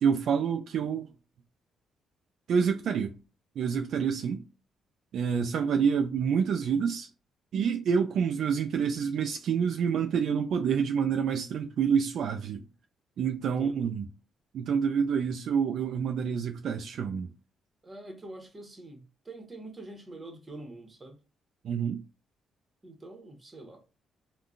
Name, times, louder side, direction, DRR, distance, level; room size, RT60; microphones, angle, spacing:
voice 1, 0.0-1.1 2.5-3.1 3.6-4.4 5.1-7.1 7.5-12.6 13.2-14.1 14.5-17.3 21.6-22.0, right 7 dB, 70° right, 0.4 m, -27 dB
voice 2, 5.6-5.9 13.4-13.9 17.8-21.2 22.8-23.8, right 2 dB, 25° right, 1.1 m, -45 dB
3.7 x 2.3 x 2.4 m
cardioid pair, 90°, 0 cm